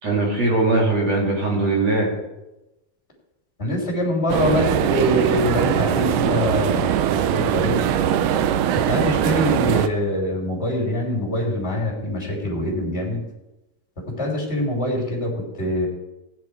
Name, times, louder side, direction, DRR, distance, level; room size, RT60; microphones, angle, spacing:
voice 1, 0.0-2.1, right 2 dB, 55° right, -3 dB, 3.9 m, -20 dB
voice 2, 3.6-7.8 8.9-13.2 14.1-15.9, left 1 dB, 20° left, -2 dB, 3.4 m, -24 dB
sound 1, 4.3-9.9, right 9 dB, 90° right, 2.3 m, -21 dB
16.5 x 9.6 x 4.7 m, 0.98 s
omnidirectional pair, 3.6 m